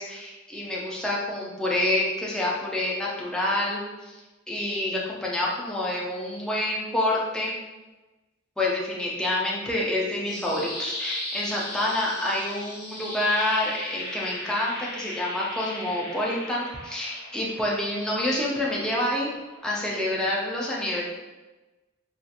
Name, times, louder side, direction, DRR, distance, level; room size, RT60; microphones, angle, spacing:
voice 1, 0.0-4.2 4.5-7.5 8.6-19.3 19.6-21.0, left 1 dB, 5° left, -5 dB, 0.4 m, -27 dB
sound 1, 10.0-20.1, left 1 dB, 35° left, 0.8 m, -38 dB
2.5 x 2.4 x 2.7 m, 1.1 s
head